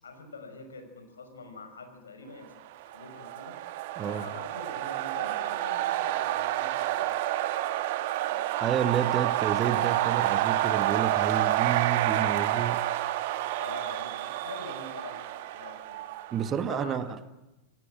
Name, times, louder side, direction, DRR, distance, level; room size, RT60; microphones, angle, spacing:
voice 1, 0.0-3.6 4.0-7.1 8.2-8.7 13.6-16.0 16.6-17.2, left 3 dB, 70° left, 5.9 m, -45 dB
sound 1, 2.8-16.6, right 14 dB, 50° right, 1.7 m, -29 dB
voice 2, 4.0-4.3 8.6-12.9 16.3-17.2, right 8 dB, 25° right, 1.6 m, -30 dB
28.0 x 20.5 x 10.0 m
figure-of-eight pair, 90°, 0 cm